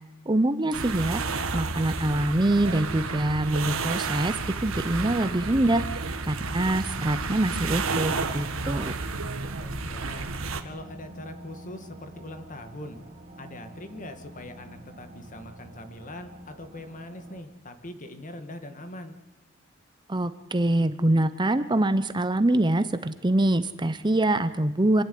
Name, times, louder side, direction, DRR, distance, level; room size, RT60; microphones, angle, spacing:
voice 1, 0.3-1.2 1.5-4.3 4.6-5.8 6.2-9.0 20.1-25.0, right 1 dB, 20° right, 11 dB, 0.8 m, -24 dB
sound 1, 0.7-10.6, right 4 dB, 75° right, 1.8 m, -31 dB
sound 2, 8.5-17.4, right 1 dB, 35° right, 3.3 m, -48 dB
voice 2, 9.6-10.3 10.6-13.0 13.4-19.2, left 1 dB, 40° left, 8 dB, 1.9 m, -42 dB
26.0 x 12.0 x 9.3 m, 1.2 s
head